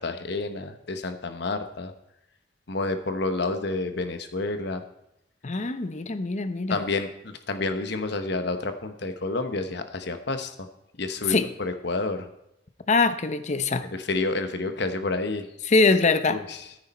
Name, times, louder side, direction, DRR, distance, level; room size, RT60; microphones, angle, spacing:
voice 1, 0.0-1.9 2.7-4.8 6.7-10.7 11.0-12.3 13.8-15.5 16.3-16.6, left 3 dB, 65° left, 8 dB, 1.1 m, -29 dB
voice 2, 5.4-6.8 11.3-11.5 12.9-13.8 15.7-16.4, left 3 dB, 40° left, 10 dB, 0.7 m, -23 dB
13.5 x 9.5 x 4.3 m, 0.83 s
head